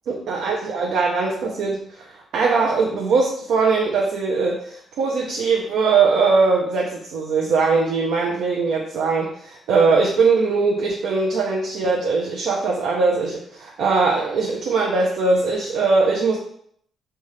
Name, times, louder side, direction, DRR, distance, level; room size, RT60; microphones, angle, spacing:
voice 1, 0.1-16.4, right 4 dB, 80° right, -2 dB, 0.6 m, -21 dB
3.4 x 2.7 x 3.2 m, 0.65 s
cardioid pair, 90°, 0 cm